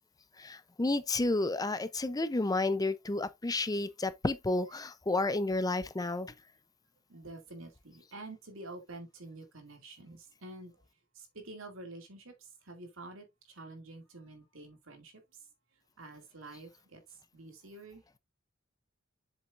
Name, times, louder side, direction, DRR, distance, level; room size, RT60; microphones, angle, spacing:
voice 1, 0.4-6.3, left 2 dB, 20° left, 0.5 m, -31 dB
voice 2, 7.1-10.7 11.3-12.3 12.7-15.1 16.0-17.0 17.3-18.0, right 2 dB, 75° right, 2.3 m, -48 dB
7.6 x 7.0 x 2.5 m
head